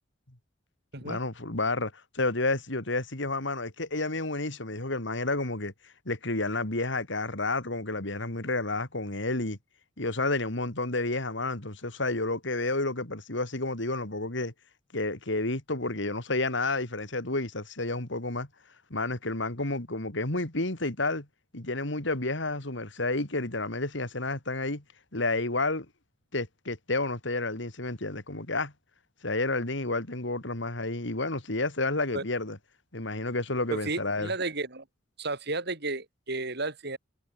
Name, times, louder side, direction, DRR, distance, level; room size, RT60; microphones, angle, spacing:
voice 1, 1.0-5.7 6.1-9.6 10.0-14.5 14.9-18.5 18.9-21.3 21.5-24.8 25.1-25.9 26.3-28.7 29.2-32.6 32.9-34.3, left 2 dB, 70° left, 3.5 m, -30 dB
voice 2, 33.7-34.8 35.2-37.0, right 3 dB, 60° right, 6.5 m, -32 dB
head